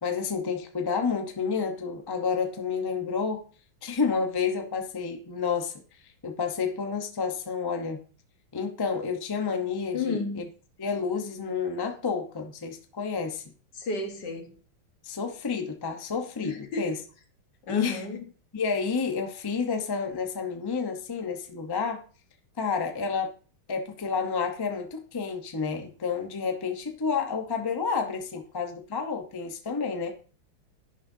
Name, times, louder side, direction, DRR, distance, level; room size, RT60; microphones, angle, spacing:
voice 1, 0.0-3.4 3.8-5.7 6.2-8.0 8.5-10.4 10.8-13.4 15.0-17.0 17.7-18.0 18.5-22.0 22.6-23.3 23.7-30.1, left 5 dB, 40° left, 0.3 m, -30 dB
voice 2, 9.9-10.4 13.7-14.5 16.4-16.9 17.6-18.2, left 3 dB, 55° left, 1.9 m, -32 dB
11.0 x 10.5 x 2.7 m
omnidirectional pair, 2.3 m